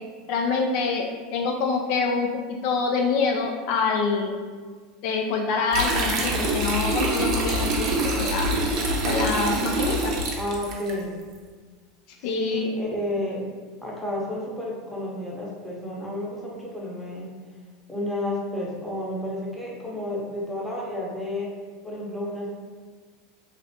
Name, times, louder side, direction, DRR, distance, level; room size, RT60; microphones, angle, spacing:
voice 1, 0.3-2.3 2.6-4.4 5.0-8.5 9.0-10.1 12.2-12.7, left 4 dB, 65° left, 2 dB, 0.3 m, -25 dB
sound 1, 5.7-10.9, right 1 dB, 50° right, 0.6 m, -25 dB
voice 2, 10.3-11.2 12.2-13.5 13.8-17.4 17.9-21.5 21.8-22.5, left 1 dB, 5° left, -5 dB, 0.8 m, -31 dB
3.2 x 2.4 x 2.7 m, 1.5 s
supercardioid pair, 115°, 0 cm